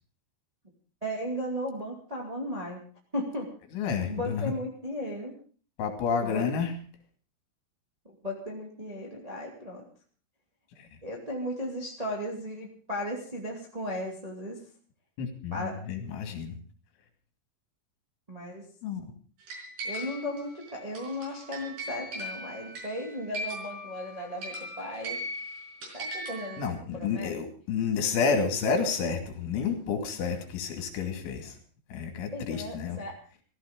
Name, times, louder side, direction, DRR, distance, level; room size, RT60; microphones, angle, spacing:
voice 1, 1.0-2.8 3.1-3.5 4.0-5.3 6.2-6.5 8.0-9.8 11.0-14.6 15.5-15.8 18.3-18.6 19.8-25.2 25.9-27.4 32.3-33.1, equal, 25° right, -1 dB, 0.8 m, -36 dB
voice 2, 3.7-4.5 5.8-6.7 15.2-16.6 18.8-19.0 26.6-31.6 31.9-33.0, left 5 dB, 70° left, 5 dB, 4.8 m, -30 dB
sound 1, 19.5-26.7, equal, 55° right, 6.9 m, -39 dB
15.5 x 15.5 x 5.2 m, 0.42 s
omnidirectional pair, 5.7 m